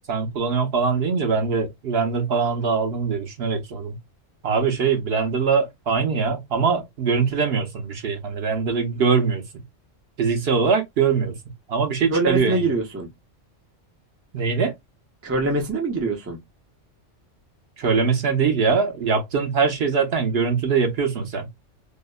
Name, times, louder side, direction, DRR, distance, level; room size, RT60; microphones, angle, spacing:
voice 1, 0.1-4.0 4.4-9.6 10.2-11.4 11.7-12.6 14.3-14.7 17.8-21.5, right 5 dB, 60° right, 0.8 m, -22 dB
voice 2, 12.1-13.1 15.2-16.4, right 3 dB, 20° right, 0.4 m, -24 dB
2.7 x 2.0 x 2.2 m
omnidirectional pair, 1.3 m